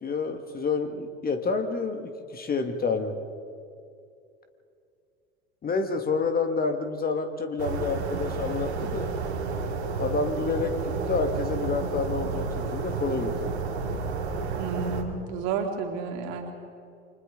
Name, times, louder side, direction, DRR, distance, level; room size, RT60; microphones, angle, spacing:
voice 1, 0.0-3.2 5.6-9.1 10.0-13.6, left 4 dB, 25° left, 6 dB, 1.8 m, -29 dB
sound 1, 7.6-15.0, right 4 dB, 80° right, 2.4 m, -31 dB
voice 2, 14.6-16.5, right 5 dB, 55° right, 2 dB, 3.2 m, -31 dB
29.0 x 26.0 x 3.9 m, 2.5 s
figure-of-eight pair, 75°, 33 cm